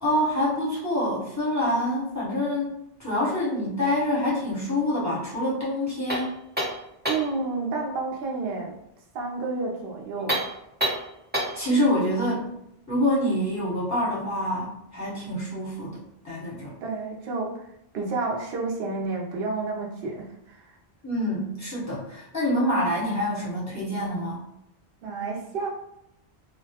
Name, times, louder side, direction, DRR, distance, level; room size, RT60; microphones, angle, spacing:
voice 1, 0.0-2.7 3.0-6.3 11.5-12.5 12.9-16.0 16.2-16.7 21.0-24.4, left 1 dB, 15° left, -9 dB, 1.0 m, -26 dB
sound 1, 6.1-7.4 10.2-11.7, right 1 dB, 10° right, 0.6 m, -28 dB
voice 2, 7.1-8.7 9.1-10.4 11.7-11.9 16.8-17.5 17.9-20.7 25.0-25.7, right 3 dB, 65° right, -1 dB, 0.7 m, -30 dB
2.2 x 2.1 x 2.7 m, 0.79 s
omnidirectional pair, 1.1 m